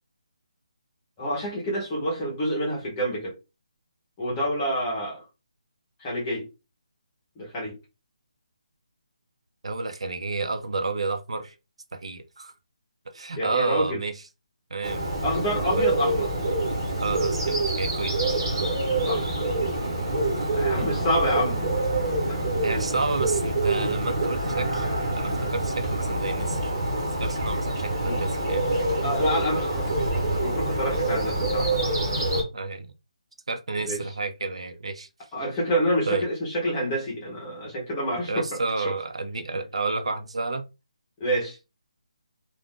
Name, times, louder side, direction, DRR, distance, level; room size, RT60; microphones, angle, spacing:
voice 1, 1.2-3.4 4.2-5.2 6.0-6.5 7.4-7.8 13.3-14.0 15.2-16.3 19.0-19.3 20.5-21.6 22.3-22.5 28.0-28.2 29.0-31.9 33.8-34.0 35.3-38.6 38.8-38.9 41.2-41.6, equal, 10° left, 0.7 m, -28 dB
voice 2, 9.6-11.5 11.9-12.5 13.1-14.2 14.7-15.0 15.7-15.8 17.0-18.1 20.4-20.5 20.8-20.9 22.6-24.9 25.2-26.7 27.2-28.7 32.5-32.9 33.5-35.1 36.1-36.2 38.3-40.6, right 3 dB, 55° right, 0.5 m, -30 dB
Bird, 14.8-32.4, right 2 dB, 25° right, 1.1 m, -26 dB
2.5 x 2.3 x 3.5 m
hypercardioid pair, 180°, 4 cm